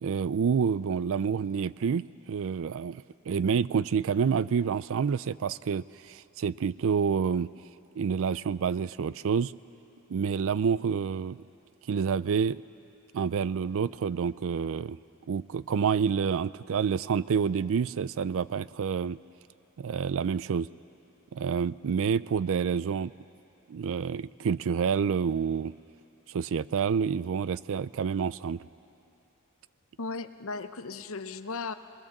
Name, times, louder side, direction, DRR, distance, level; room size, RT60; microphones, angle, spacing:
voice 1, 0.0-7.5 8.0-9.5 10.1-11.4 11.9-12.6 13.1-15.0 15.3-19.2 19.8-20.7 21.3-23.1 23.7-25.7 26.3-28.7, right 6 dB, 65° right, 18 dB, 0.4 m, -28 dB
voice 2, 30.0-31.7, left 4 dB, 65° left, 10 dB, 0.8 m, -36 dB
22.5 x 19.5 x 7.2 m, 2.7 s
head